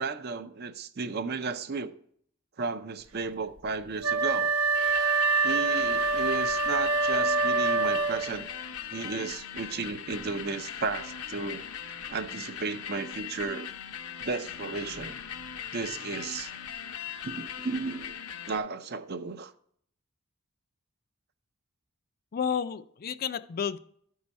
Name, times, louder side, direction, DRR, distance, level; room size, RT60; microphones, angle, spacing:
voice 1, 0.0-2.0 2.6-4.5 5.4-8.5 8.9-11.6 12.1-13.7 14.2-15.2 15.7-16.5 17.2-18.1 18.5-19.5, right 4 dB, 50° right, 0.6 m, -34 dB
Wind instrument woodwind instrument, 4.0-8.5, right 4 dB, 80° right, 1.0 m, -25 dB
sound 1, 4.7-18.6, left 8 dB, 85° left, 0.7 m, -40 dB
voice 2, 22.3-23.8, left 7 dB, 45° left, 0.4 m, -31 dB
13.0 x 4.7 x 4.1 m
head